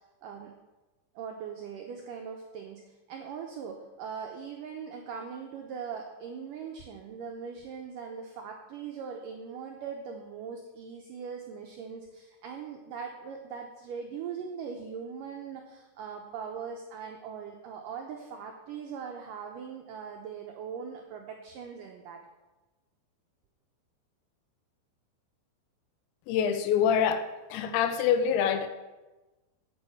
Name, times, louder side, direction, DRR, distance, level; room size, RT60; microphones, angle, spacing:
voice 1, 0.2-0.5 1.2-22.2, right 6 dB, 90° right, 2 dB, 1.9 m, -40 dB
voice 2, 26.3-27.2 27.5-28.7, left 8 dB, 90° left, 10 dB, 3.2 m, -25 dB
9.0 x 8.8 x 7.0 m, 1.1 s
omnidirectional pair, 5.1 m